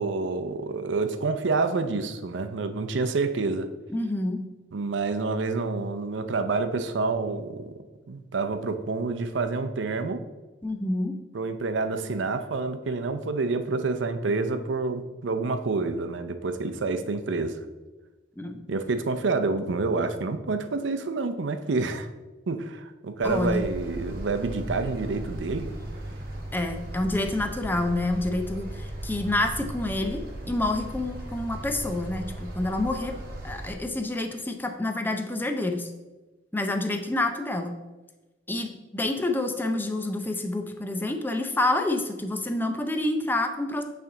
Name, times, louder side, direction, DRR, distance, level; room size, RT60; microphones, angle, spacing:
voice 1, 0.0-3.7 4.7-7.7 8.1-10.2 11.3-17.6 18.7-22.1 22.5-25.7, right 3 dB, 75° right, 8 dB, 0.5 m, -28 dB
voice 2, 3.9-4.4 10.6-11.2 18.4-18.6 23.2-23.7 26.5-33.1 33.4-35.9 36.5-37.8 38.5-43.8, left 2 dB, 10° left, 5 dB, 0.5 m, -28 dB
sound 1, 23.2-33.8, right 1 dB, 55° right, 1.1 m, -37 dB
8.5 x 3.4 x 3.8 m, 1.2 s
head